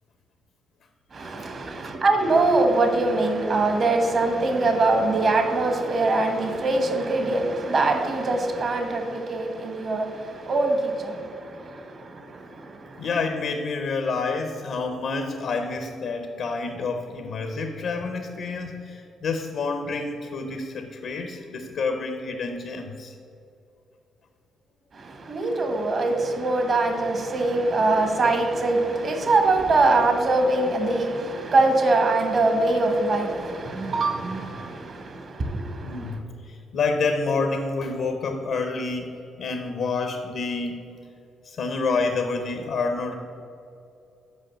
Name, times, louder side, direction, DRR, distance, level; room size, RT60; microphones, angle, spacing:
voice 1, 1.1-13.1 24.9-36.2, right 2 dB, 45° right, 5 dB, 1.1 m, -23 dB
voice 2, 13.0-23.1 35.8-39.1 39.4-40.9 41.4-43.2, left 4 dB, 65° left, 5 dB, 0.7 m, -28 dB
6.3 x 4.9 x 6.7 m, 2.7 s
cardioid pair, 90°, 0 cm